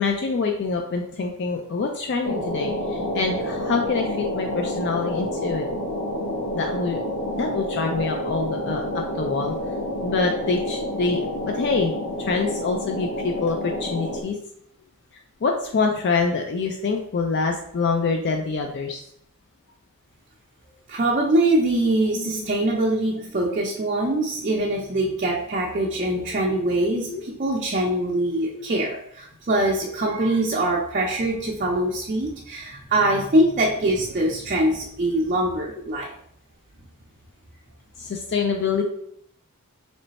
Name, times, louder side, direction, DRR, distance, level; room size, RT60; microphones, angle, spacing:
voice 1, 0.0-5.7 6.5-7.0 7.3-9.6 10.0-14.4 15.4-19.0 22.1-22.5 24.5-24.6 27.1-27.3 28.6-28.8 38.0-38.8, left 4 dB, 50° left, 3 dB, 0.4 m, -25 dB
sound 1, 2.2-14.2, left 1 dB, 85° left, 0.8 m, -29 dB
voice 2, 20.9-36.1, right 1 dB, 35° right, -3 dB, 0.5 m, -23 dB
3.2 x 3.1 x 4.0 m, 0.70 s
head